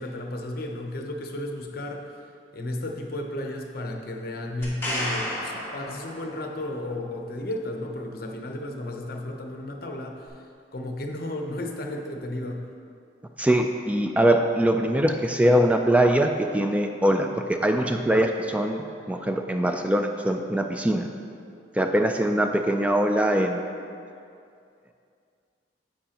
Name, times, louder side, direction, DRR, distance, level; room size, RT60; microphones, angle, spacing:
voice 1, 0.0-2.1 2.5-10.4 10.7-12.6, left 1 dB, 60° left, 3 dB, 0.8 m, -33 dB
sound 1, 4.6-6.6 10.3-10.4, left 1 dB, 15° left, 2.1 m, -32 dB
voice 2, 13.4-21.1 21.7-23.6, right 1 dB, 10° right, 5 dB, 0.3 m, -22 dB
10.0 x 7.8 x 2.9 m, 2.4 s
head